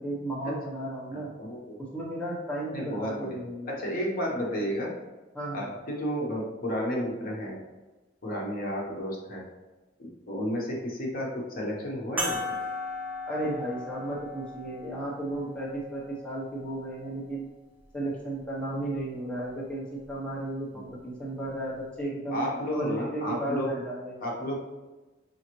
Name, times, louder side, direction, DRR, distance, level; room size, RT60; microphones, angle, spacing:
voice 1, 0.0-1.3 1.8-3.7 5.3-5.7 13.2-17.5 17.9-24.2, right 1 dB, 5° left, -6 dB, 0.7 m, -34 dB
voice 2, 1.1-1.8 2.7-3.4 3.7-4.9 5.5-7.6 8.2-9.4 10.0-12.5 20.8-21.0 22.3-23.7 24.2-24.6, equal, 50° left, -2 dB, 0.9 m, -32 dB
sound 1, 12.2-17.0 17.8-17.9 20.0-20.1, left 2 dB, 10° right, 1.0 m, -37 dB
5.4 x 2.5 x 3.0 m, 1.2 s
head